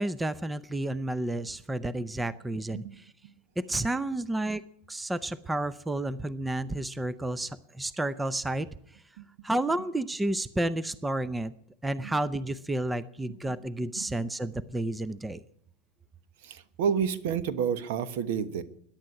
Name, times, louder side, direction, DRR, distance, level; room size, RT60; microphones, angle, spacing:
voice 1, 0.0-2.8 3.6-4.6 4.9-8.7 9.4-11.5 11.8-15.4, right 1 dB, 10° right, 15 dB, 0.6 m, -31 dB
voice 2, 16.4-18.6, right 7 dB, 70° right, 13 dB, 1.2 m, -30 dB
14.0 x 10.5 x 9.7 m, 0.71 s
supercardioid pair, 130°, 0 cm